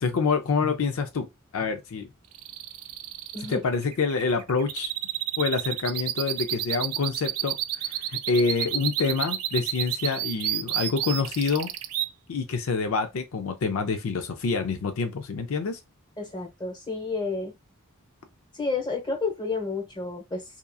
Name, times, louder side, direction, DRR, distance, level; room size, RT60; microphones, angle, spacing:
voice 1, 0.0-1.3 1.5-2.1 3.5-4.9 5.4-11.7 12.3-15.8, left 4 dB, 65° left, 0.4 m, -27 dB
sound 1, 2.3-12.1, right 12 dB, 75° right, 0.4 m, -30 dB
voice 2, 16.2-17.5 18.5-20.6, left 3 dB, 20° left, 1.0 m, -31 dB
2.8 x 2.4 x 2.3 m
head